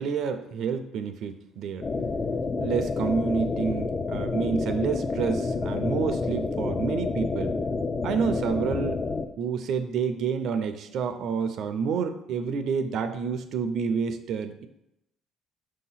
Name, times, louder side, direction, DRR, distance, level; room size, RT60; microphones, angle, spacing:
voice 1, 0.0-1.9 2.6-7.6 8.0-9.0 9.4-14.7, right 6 dB, 65° right, 9 dB, 0.5 m, -29 dB
sound 1, 1.8-9.3, left 4 dB, 30° left, 0.4 m, -29 dB
6.2 x 2.8 x 5.6 m, 0.84 s
cardioid pair, 115°, 0 cm